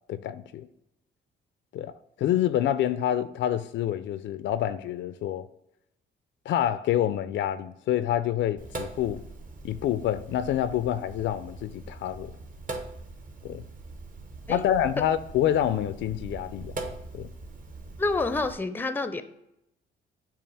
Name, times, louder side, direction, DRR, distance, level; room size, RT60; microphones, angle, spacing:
voice 1, 0.1-0.7 1.7-1.9 2.2-5.5 6.5-9.2 9.6-12.3 13.4-13.6 14.5-16.7 17.1-17.3, left 11 dB, 70° left, 0.4 m, -27 dB
Sink (filling or washing), 8.6-18.5, right 2 dB, 40° right, 1.0 m, -41 dB
voice 2, 18.0-19.2, left 3 dB, 10° left, 0.5 m, -28 dB
7.3 x 2.5 x 5.4 m
cardioid pair, 90°, 20 cm